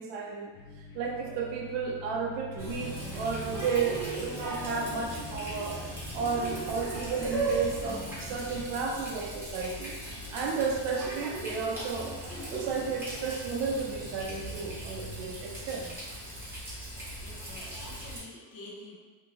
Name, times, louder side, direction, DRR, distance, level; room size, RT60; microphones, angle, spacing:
voice 1, 0.0-5.8 6.1-10.0 10.3-15.9, right 5 dB, 60° right, 0 dB, 0.6 m, -33 dB
sound 1, 0.5-8.9, left 4 dB, 50° left, 0.5 m, -49 dB
Water tap faucet, 2.6-18.2, right 1 dB, 5° right, 0.8 m, -37 dB
voice 2, 16.9-19.0, left 2 dB, 75° left, -4 dB, 0.9 m, -48 dB
2.8 x 2.6 x 2.8 m, 1.4 s
cardioid pair, 145°, 48 cm